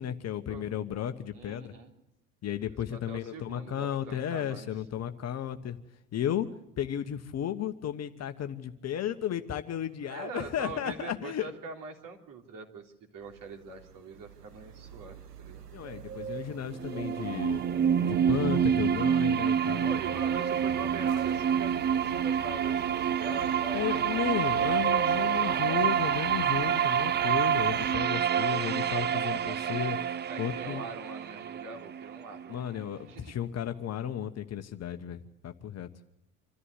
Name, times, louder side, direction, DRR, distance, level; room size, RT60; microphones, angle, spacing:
voice 1, 0.0-1.7 2.4-5.8 6.1-6.5 6.8-11.5 15.7-17.6 18.0-19.9 23.7-30.0 30.4-30.8 32.5-35.9, left 10 dB, 35° left, 9 dB, 1.2 m, -34 dB
voice 2, 1.3-1.9 2.9-4.7 10.0-15.7 19.8-24.1 24.4-25.7 30.3-32.6 33.1-33.3, right 4 dB, 45° right, 2 dB, 3.7 m, -43 dB
sound 1, 13.3-28.0, right 7 dB, 85° right, 1.2 m, -43 dB
sound 2, 16.7-32.6, right 8 dB, 25° right, 0.7 m, -28 dB
26.5 x 14.0 x 8.2 m, 0.88 s
figure-of-eight pair, 70°, 46 cm